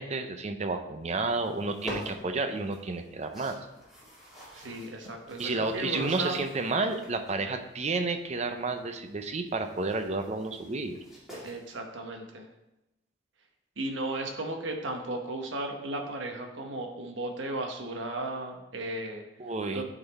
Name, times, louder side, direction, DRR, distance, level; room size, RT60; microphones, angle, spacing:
voice 1, 0.0-3.6 5.4-11.0 19.4-19.8, right 3 dB, 35° right, 7 dB, 0.6 m, -31 dB
sound 1, 1.1-11.8, equal, ahead, 2.2 m, -48 dB
voice 2, 4.5-6.4 11.4-12.5 13.8-19.2 19.7-19.8, right 2 dB, 75° right, 3 dB, 1.0 m, -35 dB
9.9 x 4.0 x 4.1 m, 0.93 s
head